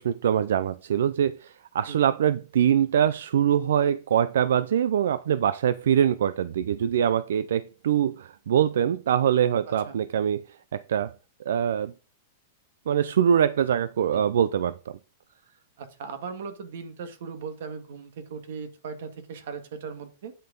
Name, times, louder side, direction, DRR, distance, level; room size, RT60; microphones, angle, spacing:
voice 1, 0.0-10.4 10.7-11.1 11.5-11.9 12.9-15.0, right 9 dB, 90° right, 0.5 m, -23 dB
voice 2, 9.7-10.0 14.1-14.2 15.8-20.3, right 5 dB, 70° right, 2.0 m, -38 dB
8.9 x 6.6 x 3.9 m
supercardioid pair, 160°, 0 cm